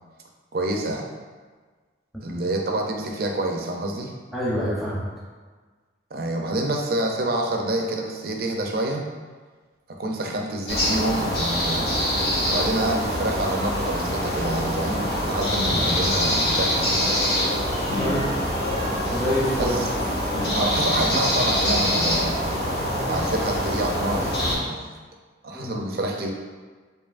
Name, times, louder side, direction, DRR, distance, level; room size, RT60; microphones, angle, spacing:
voice 1, 0.5-1.1 2.2-4.1 6.1-9.0 10.0-11.9 12.5-17.0 19.6-19.9 20.5-22.6 23.0-24.9 25.4-26.3, right 1 dB, 55° right, 1 dB, 0.5 m, -27 dB
voice 2, 4.3-5.0 18.0-18.3 19.1-19.8 25.5-25.8, equal, ahead, -7 dB, 0.8 m, -26 dB
sound 1, 10.7-24.6, equal, 55° left, 1.2 m, -24 dB
4.8 x 2.6 x 2.5 m, 1.4 s
head